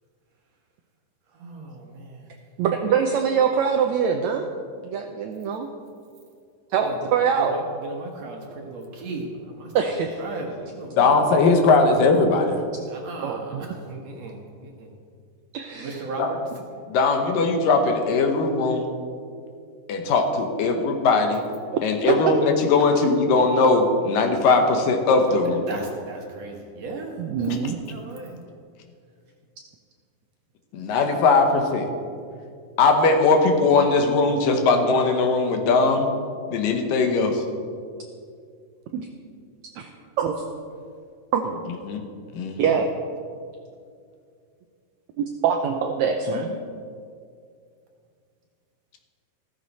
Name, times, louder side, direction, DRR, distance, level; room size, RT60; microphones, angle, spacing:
voice 1, 1.3-2.3 6.7-9.9 10.2-11.2 12.8-14.9 15.7-16.4 25.7-28.4, right 3 dB, 55° right, 1 dB, 2.2 m, -37 dB
voice 2, 2.6-4.5 4.8-5.7 6.7-7.5 9.7-10.1 13.2-13.6 15.5-16.0 22.1-22.2 27.2-27.8 38.9-39.1 39.8-39.9 40.2-40.3 41.3-41.6 42.6-42.9 45.2-46.5, right 7 dB, 85° right, 4 dB, 1.6 m, -23 dB
voice 3, 11.0-12.7 16.2-16.3 16.9-18.9 19.9-21.4 21.8-25.6 27.5-27.6 30.7-31.9 32.8-36.1 36.5-37.4 41.8-42.0 42.3-42.6 46.3-46.4, left 3 dB, 75° left, 4 dB, 2.7 m, -20 dB
14.0 x 14.0 x 4.2 m, 2.3 s
omnidirectional pair, 4.1 m